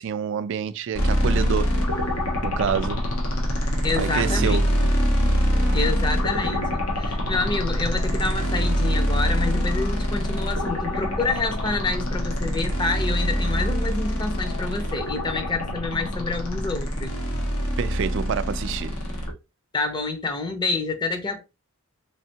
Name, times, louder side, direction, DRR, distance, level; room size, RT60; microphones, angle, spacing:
voice 1, 0.0-1.8 2.4-3.1 4.0-4.8 17.8-19.0, right 7 dB, 55° right, 0.3 m, -27 dB
sound 1, 0.9-19.3, equal, 80° left, 1.1 m, -24 dB
voice 2, 3.8-4.6 5.7-17.1 19.7-21.4, left 3 dB, 20° left, 0.6 m, -28 dB
sound 2, 5.5-16.2, left 2 dB, 65° left, 0.8 m, -40 dB
3.6 x 3.2 x 2.8 m
head